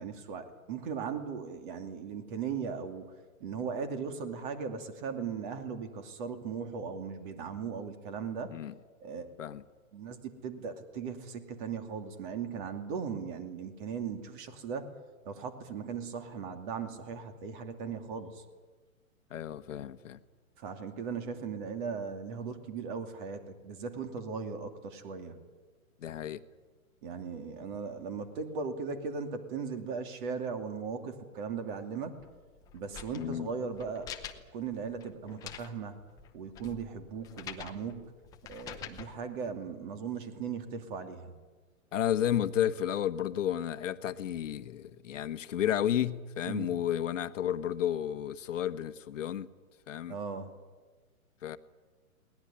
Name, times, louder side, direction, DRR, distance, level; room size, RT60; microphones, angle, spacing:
voice 1, 0.0-3.1 3.4-8.5 9.0-9.3 9.9-14.9 15.2-18.4 20.6-25.4 27.0-32.2 32.7-36.0 36.3-38.1 38.5-41.3 46.5-46.8 50.1-50.5, right 6 dB, 35° right, 7 dB, 2.7 m, -38 dB
voice 2, 19.3-20.2 26.0-26.4 33.1-33.5 41.9-49.5 49.9-50.2 51.4-51.6, left 10 dB, 60° left, 11 dB, 1.4 m, -32 dB
sound 1, 32.2-39.1, left 8 dB, 10° left, 0.8 m, -47 dB
21.5 x 19.0 x 10.0 m, 1.3 s
hypercardioid pair, 155°, 43 cm